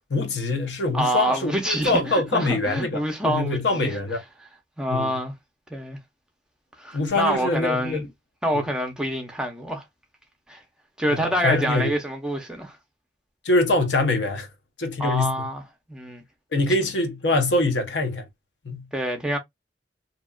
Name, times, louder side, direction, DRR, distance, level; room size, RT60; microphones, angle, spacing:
voice 1, 0.1-4.2 4.9-5.2 6.9-8.1 8.5-8.6 11.1-11.9 13.4-14.5 14.8-15.4 16.5-18.3 18.6-18.9, left 2 dB, 70° left, 0.7 m, -24 dB
voice 2, 0.9-4.0 4.8-5.3 5.7-6.0 6.8-8.0 8.4-9.8 10.5-10.6 11.0-12.8 15.0-15.6 15.9-16.2 18.9-19.4, right 1 dB, 5° right, 0.5 m, -26 dB
2.8 x 2.2 x 2.3 m
head